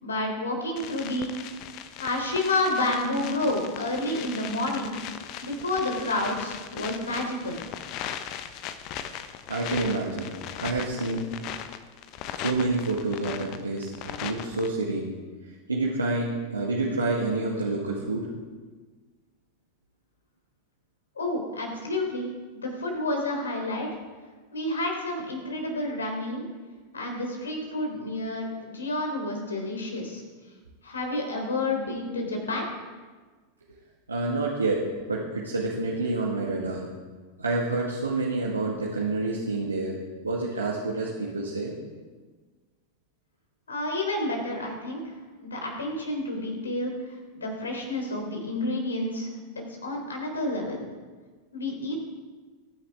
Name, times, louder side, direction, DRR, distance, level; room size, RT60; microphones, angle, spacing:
voice 1, 0.0-1.3 2.0-5.0 5.4-7.6 21.2-22.3 22.6-23.9 24.5-26.5 26.9-30.2 30.8-32.7 43.7-45.0 45.3-46.9 47.4-49.3 49.6-50.8 51.5-51.9, left 2 dB, 70° left, 2 dB, 3.5 m, -29 dB
sound 1, 0.8-14.7, left 10 dB, 40° left, 0.9 m, -38 dB
voice 2, 9.5-11.3 12.3-15.1 15.7-18.3 34.1-36.9 37.4-40.0 40.2-41.8, right 2 dB, 80° right, -4 dB, 1.8 m, -28 dB
21.5 x 10.0 x 3.6 m, 1.4 s
figure-of-eight pair, 90°, 0 cm